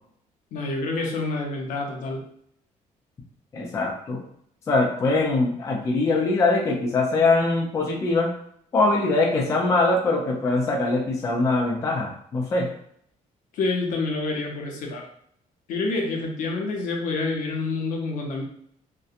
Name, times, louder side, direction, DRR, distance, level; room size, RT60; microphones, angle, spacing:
voice 1, 0.5-2.3 13.5-15.1 15.7-18.4, left 3 dB, 70° left, 1 dB, 0.6 m, -27 dB
voice 2, 3.5-4.2 4.7-8.3 8.7-12.7, left 3 dB, 20° left, -1 dB, 0.3 m, -22 dB
2.7 x 2.1 x 2.4 m, 0.66 s
cardioid pair, 180°, 14 cm